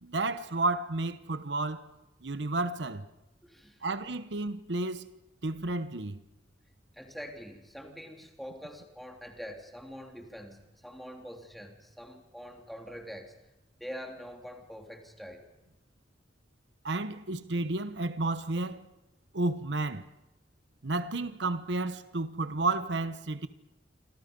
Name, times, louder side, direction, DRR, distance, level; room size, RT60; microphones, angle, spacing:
voice 1, 0.0-1.9 2.2-3.1 3.8-5.1 5.4-6.2 16.8-18.9 19.3-20.0 20.8-23.5, right 2 dB, 85° right, 1.1 m, -31 dB
voice 2, 3.4-3.9 6.9-13.3 13.8-15.4, equal, ahead, 3.3 m, -45 dB
27.5 x 26.5 x 5.4 m
head